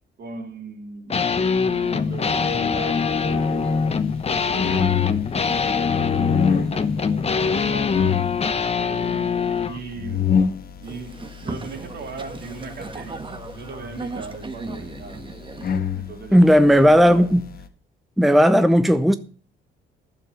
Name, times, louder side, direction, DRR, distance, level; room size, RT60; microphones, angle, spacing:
voice 1, 0.2-4.0 4.4-8.3 8.7-10.3 10.8-15.3 15.9-17.4, right 4 dB, 55° right, 2.9 m, -38 dB
sound 1, 1.1-9.8, left 5 dB, 30° left, 1.1 m, -23 dB
sound 2, 2.3-17.7, left 7 dB, 50° left, 1.3 m, -28 dB
Boat Water vehicle, 10.8-15.8, right 3 dB, 25° right, 1.3 m, -37 dB
voice 2, 16.3-17.4 18.2-19.2, equal, ahead, 0.7 m, -14 dB
11.0 x 7.4 x 7.0 m
cardioid pair, 90°, 19 cm